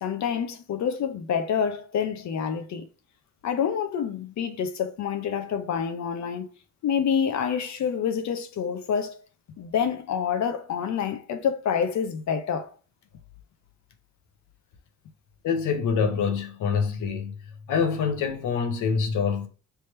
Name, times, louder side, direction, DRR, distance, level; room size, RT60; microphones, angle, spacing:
voice 1, 0.0-2.9 3.4-6.5 6.8-9.2 9.6-12.7, left 7 dB, 65° left, 0.8 m, -27 dB
voice 2, 15.4-17.3 17.7-19.5, left 6 dB, 80° left, 1.0 m, -25 dB
3.5 x 3.0 x 4.4 m
cardioid pair, 90°, 30 cm